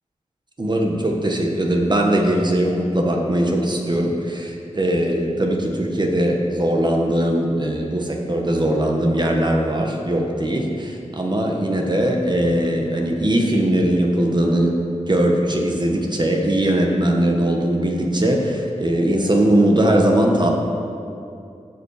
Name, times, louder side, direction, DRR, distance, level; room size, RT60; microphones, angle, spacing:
voice 1, 0.6-14.7 15.1-20.5, right 1 dB, 35° right, 1 dB, 1.3 m, -20 dB
16.0 x 5.6 x 4.9 m, 2.6 s
wide cardioid pair, 70°, 13 cm